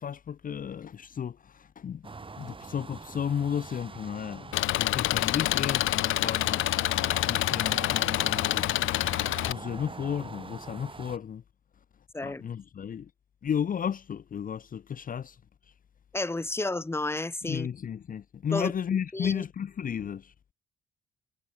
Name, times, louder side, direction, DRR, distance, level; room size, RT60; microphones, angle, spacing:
voice 1, 0.0-2.0 2.4-6.7 7.2-9.2 9.5-11.4 12.2-13.1 13.4-15.4 17.4-20.3, left 8 dB, 45° left, 0.9 m, -33 dB
sound 1, 2.0-11.2, right 4 dB, 25° right, 2.5 m, -43 dB
Engine, 4.5-9.5, left 16 dB, 85° left, 1.2 m, -27 dB
voice 2, 16.1-17.7 18.5-18.7 19.1-19.4, left 2 dB, 10° left, 1.5 m, -31 dB
cardioid pair, 90°, 20 cm